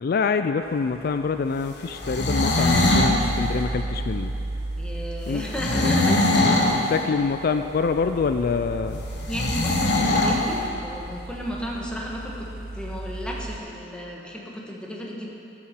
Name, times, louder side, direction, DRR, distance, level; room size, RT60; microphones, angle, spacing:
voice 1, 0.0-4.3 5.3-5.4 5.7-6.5 6.9-9.0, left 5 dB, 60° left, 9 dB, 0.4 m, -26 dB
sound 1, 0.7-13.6, right 2 dB, 60° right, 0.7 m, -35 dB
sound 2, 1.9-3.2 5.5-6.8 9.3-10.4, left 2 dB, 75° left, 1.4 m, -21 dB
voice 2, 4.8-6.4 9.3-12.5 12.7-15.3, equal, 5° left, -3 dB, 1.5 m, -33 dB
12.5 x 7.2 x 6.7 m, 2.9 s
head